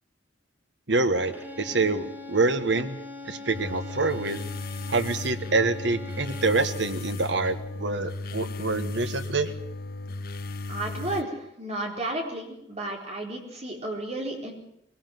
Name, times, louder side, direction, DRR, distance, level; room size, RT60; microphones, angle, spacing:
voice 1, 0.9-3.0 3.2-4.4 4.9-9.5, right 3 dB, 70° right, 9 dB, 1.4 m, -26 dB
Bowed string instrument, 1.3-6.7, left 2 dB, 10° right, 2.1 m, -42 dB
sound 1, 3.5-11.2, left 3 dB, 55° left, 0.9 m, -36 dB
voice 2, 10.7-14.5, right 1 dB, 35° right, 1 dB, 4.3 m, -33 dB
21.5 x 18.0 x 7.7 m, 0.78 s
head